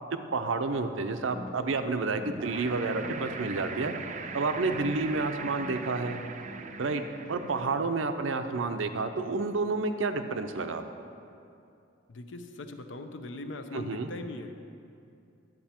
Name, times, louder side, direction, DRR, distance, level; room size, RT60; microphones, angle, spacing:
voice 1, 0.3-3.9 4.3-6.2 6.8-7.0 7.3-10.8 13.7-14.1, right 3 dB, 85° right, 8 dB, 0.6 m, -30 dB
sound 1, 1.1-7.9, left 1 dB, 45° left, 1.6 m, -46 dB
sound 2, 2.4-7.8, right 5 dB, 40° right, 0.4 m, -40 dB
voice 2, 12.1-14.5, left 2 dB, 70° left, 7 dB, 0.7 m, -40 dB
11.0 x 8.1 x 4.4 m, 2.6 s
head